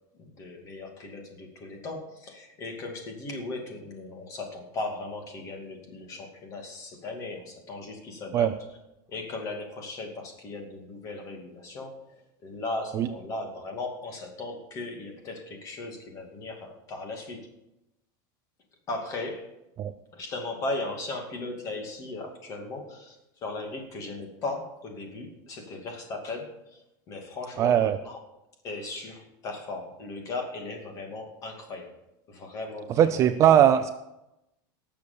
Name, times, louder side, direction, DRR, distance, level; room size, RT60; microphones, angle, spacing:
voice 1, 0.2-8.7 9.1-17.5 18.9-19.5 20.1-28.2 28.6-31.9 32.3-33.3, left 2 dB, 30° left, 3 dB, 2.4 m, -37 dB
voice 2, 27.6-28.0 33.0-33.9, right 10 dB, 25° right, 9 dB, 0.4 m, -20 dB
18.0 x 7.0 x 6.9 m, 0.90 s
supercardioid pair, 170°, 12 cm